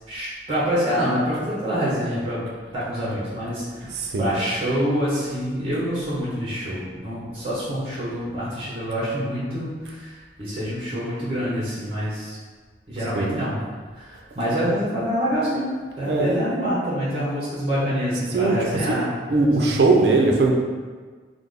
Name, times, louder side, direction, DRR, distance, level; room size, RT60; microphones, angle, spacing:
voice 1, 0.1-2.4 2.7-3.9 4.2-12.4 12.9-13.6 13.9-19.1 19.5-19.8, equal, 30° right, -8 dB, 0.8 m, -26 dB
voice 2, 3.8-4.3 13.2-13.3 16.0-16.4 18.3-19.0 19.3-20.5, right 3 dB, 60° right, 1 dB, 0.4 m, -20 dB
3.2 x 2.0 x 3.6 m, 1.5 s
head